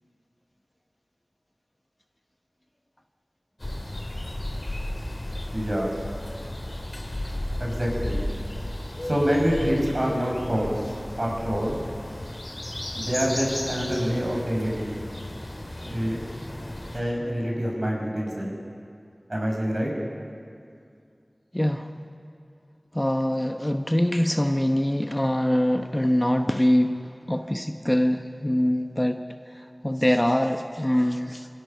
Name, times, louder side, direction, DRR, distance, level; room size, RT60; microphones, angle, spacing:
sound 1, 3.6-17.0, left 1 dB, 45° left, 3.6 m, -34 dB
voice 1, 5.5-5.9 7.6-8.2 9.0-10.9 11.2-11.8 12.9-14.9 15.9-16.2 16.9-18.5 19.3-19.9, equal, 45° right, -2 dB, 6.2 m, -26 dB
voice 2, 21.5-21.9 22.9-27.0 27.3-29.2 29.5-31.5, left 1 dB, 15° left, 5 dB, 0.9 m, -23 dB
27.5 x 17.0 x 6.8 m, 2.4 s
wide cardioid pair, 50°, 0 cm